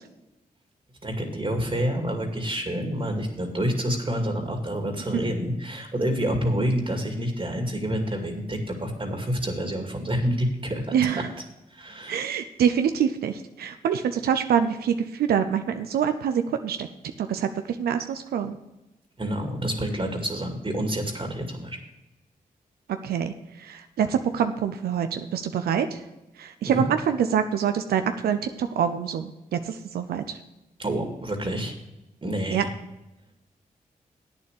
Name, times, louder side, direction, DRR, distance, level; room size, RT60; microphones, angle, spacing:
voice 1, 1.0-10.9 11.7-12.2 19.2-21.8 26.7-26.8 30.8-31.8 32.2-32.7, equal, 35° right, 3 dB, 2.3 m, -28 dB
voice 2, 10.9-11.3 12.1-16.9 17.2-18.6 22.9-26.0 26.4-30.4 32.5-32.7, right 8 dB, 90° right, 8 dB, 0.6 m, -25 dB
8.7 x 7.1 x 6.5 m, 0.96 s
supercardioid pair, 45°, 16 cm